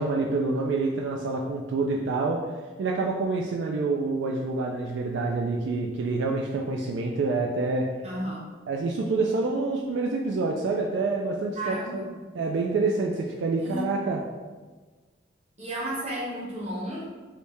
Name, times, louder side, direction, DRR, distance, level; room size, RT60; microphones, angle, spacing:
voice 1, 0.0-2.5 2.8-7.9 8.7-12.0 12.3-14.2, right 3 dB, 70° right, 0 dB, 0.3 m, -27 dB
voice 2, 8.0-8.4 11.6-12.1 13.6-13.9 15.6-17.0, right 1 dB, 35° right, -6 dB, 1.0 m, -33 dB
3.2 x 2.6 x 3.3 m, 1.3 s
head